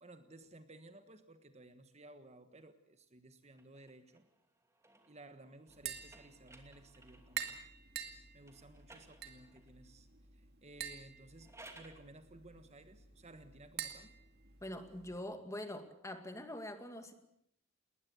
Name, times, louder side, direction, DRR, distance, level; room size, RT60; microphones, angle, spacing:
voice 1, 0.0-4.2 5.1-7.6 8.3-10.1 10.3-14.1, right 2 dB, 30° right, 9 dB, 1.4 m, -57 dB
sound 1, 3.5-7.6 8.4-9.8 11.2-12.1, right 2 dB, 15° right, 2.7 m, -60 dB
Tap, 5.7-15.2, right 9 dB, 50° right, 2.3 m, -48 dB
voice 2, 14.6-17.1, left 1 dB, 15° left, 7 dB, 2.2 m, -44 dB
20.5 x 20.0 x 8.3 m, 0.74 s
head